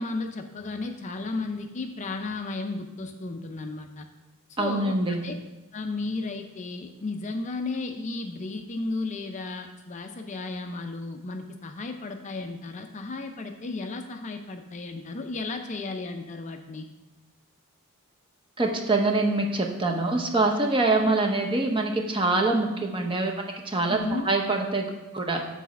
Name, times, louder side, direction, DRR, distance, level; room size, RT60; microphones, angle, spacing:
voice 1, 0.0-4.1 4.5-5.3 5.7-16.9 21.0-21.1 23.9-24.3, left 3 dB, 35° left, 5 dB, 0.4 m, -34 dB
voice 2, 4.6-5.2 18.6-23.3 23.6-24.9 25.1-25.4, right 2 dB, 25° right, 2 dB, 0.7 m, -24 dB
7.0 x 4.1 x 5.8 m, 1.1 s
head